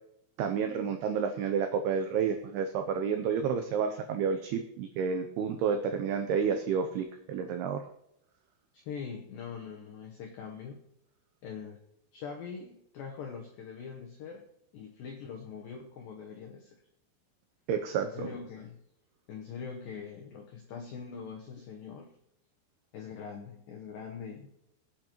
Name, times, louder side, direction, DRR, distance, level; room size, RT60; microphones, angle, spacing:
voice 1, 0.4-7.8 17.7-18.3, right 6 dB, 85° right, 6 dB, 2.2 m, -30 dB
voice 2, 8.7-10.8 11.4-11.8 12.1-14.4 14.7-16.8 18.0-18.8 19.3-22.2 22.9-24.5, left 6 dB, 80° left, 2 dB, 2.0 m, -43 dB
23.0 x 8.6 x 3.0 m, 0.78 s
omnidirectional pair, 5.4 m